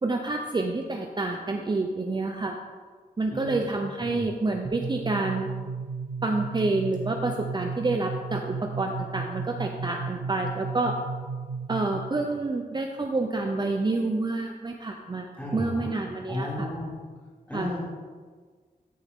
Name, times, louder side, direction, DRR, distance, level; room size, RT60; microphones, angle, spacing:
voice 1, 0.0-2.6 3.2-5.5 6.2-10.9 11.7-15.3 15.5-16.7 17.5-17.7, right 2 dB, 30° right, 3 dB, 0.6 m, -28 dB
voice 2, 3.3-4.3 15.4-15.9 16.3-17.0 17.5-17.8, left 1 dB, 10° left, -6 dB, 3.0 m, -33 dB
sound 1, 4.6-12.2, right 5 dB, 50° right, 1.1 m, -34 dB
13.5 x 6.9 x 3.6 m, 1.5 s
wide cardioid pair, 145°, 16 cm